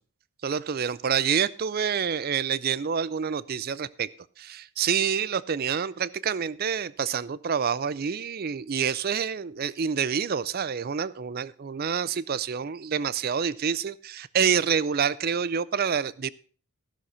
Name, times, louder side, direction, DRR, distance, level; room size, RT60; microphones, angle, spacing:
voice 1, 0.4-4.1 4.4-16.3, right 7 dB, 40° right, 18 dB, 0.4 m, -27 dB
14.5 x 6.3 x 5.5 m, 0.41 s
head